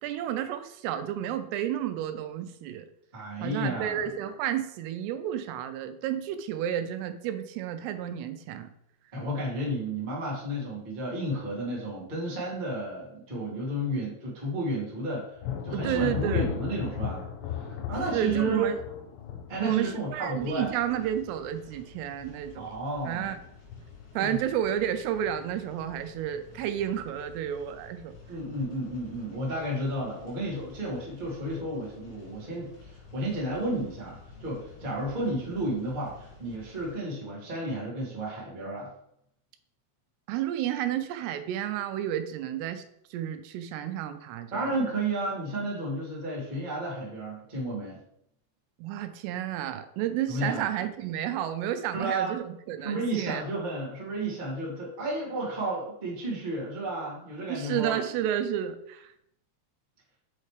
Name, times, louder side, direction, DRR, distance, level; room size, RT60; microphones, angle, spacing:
voice 1, 0.0-2.9 3.4-8.7 15.7-16.5 18.1-18.8 19.6-22.8 23.1-23.4 24.2-28.1 40.3-42.8 43.1-44.7 48.8-53.4 57.5-59.1, right 10 dB, 85° right, 10 dB, 2.6 m, -31 dB
voice 2, 3.1-4.1 9.1-15.3 15.6-18.7 19.5-20.7 22.5-23.3 24.2-24.4 28.3-38.9 44.5-48.0 50.3-50.6 51.9-52.3 52.8-58.0, right 1 dB, 35° right, -6 dB, 0.7 m, -32 dB
Thunder, 15.4-21.9 22.2-22.8 23.2-24.1, left 9 dB, 90° left, 2.9 m, -36 dB
sound 1, 20.4-37.0, left 3 dB, 75° left, 4.2 m, -50 dB
6.5 x 5.4 x 3.2 m, 0.76 s
omnidirectional pair, 4.8 m